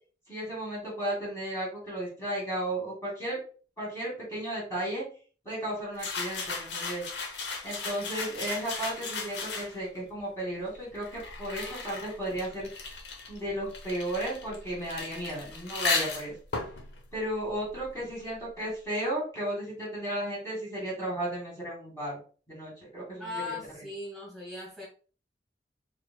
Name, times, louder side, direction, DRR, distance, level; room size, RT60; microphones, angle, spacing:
voice 1, 0.3-3.4 3.8-5.0 5.4-7.0 7.6-12.7 13.3-16.3 17.1-22.2 22.5-23.5, right 1 dB, 15° left, -6 dB, 2.0 m, -34 dB
sound 1, 6.0-10.0 10.7-18.2, left 4 dB, 85° left, 0.8 m, -36 dB
voice 2, 23.2-24.9, left 3 dB, ahead, -5 dB, 1.9 m, -38 dB
4.8 x 3.8 x 2.2 m, 0.39 s
head